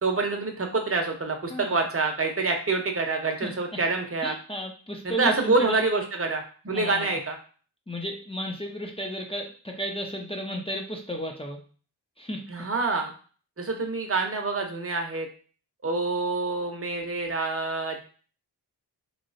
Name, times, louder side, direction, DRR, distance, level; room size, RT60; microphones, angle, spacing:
voice 1, 0.0-4.3 5.0-7.4 12.5-13.1 13.6-15.3 15.8-18.0, right 3 dB, 30° right, 3 dB, 0.9 m, -27 dB
voice 2, 4.2-5.8 6.7-7.2 7.9-11.6 12.2-12.7, equal, 15° left, 1 dB, 0.7 m, -33 dB
3.0 x 2.9 x 2.7 m, 0.39 s
cardioid pair, 45°, 43 cm